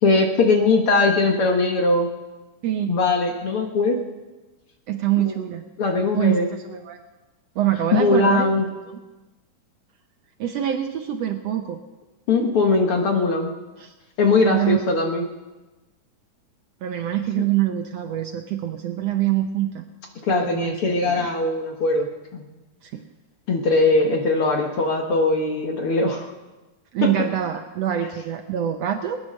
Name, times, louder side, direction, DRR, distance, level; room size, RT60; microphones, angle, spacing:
voice 1, 0.0-2.1 2.9-4.0 5.2-5.4 5.8-6.5 7.9-8.6 12.3-13.5 14.2-15.2 17.4-17.5 20.2-22.1 22.3-22.5 23.5-26.3 27.0-27.1, left 3 dB, 55° left, 2 dB, 1.8 m, -20 dB
voice 2, 2.6-3.0 4.9-5.6 6.1-7.0 7.5-8.5 8.8-9.0 10.4-11.8 13.8-13.9 14.4-14.9 16.8-19.8 20.3-21.3 22.8-23.0 26.9-29.2, right 11 dB, 80° right, 5 dB, 1.5 m, -25 dB
21.0 x 10.0 x 6.4 m, 1.1 s
omnidirectional pair, 3.8 m